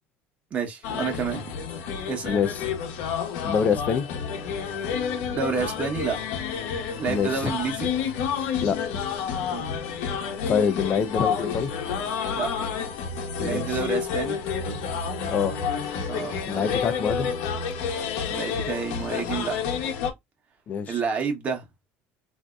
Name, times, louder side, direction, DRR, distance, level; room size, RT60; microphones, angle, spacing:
voice 1, 0.5-1.6 2.1-2.3 5.3-6.2 7.0-7.9 9.5-9.8 12.4-12.5 13.4-14.4 16.1-16.7 18.3-19.6 20.9-21.6, right 5 dB, 30° right, 1.0 m, -29 dB
sound 1, 0.8-20.1, left 6 dB, 80° left, 0.9 m, -29 dB
voice 2, 2.2-2.7 3.4-4.1 7.1-7.5 8.6-9.0 10.5-11.7 13.5-13.8 15.3-15.5 16.5-17.3 20.7-21.0, left 6 dB, 35° left, 0.5 m, -25 dB
3.5 x 2.7 x 2.3 m
cardioid pair, 145°, 5 cm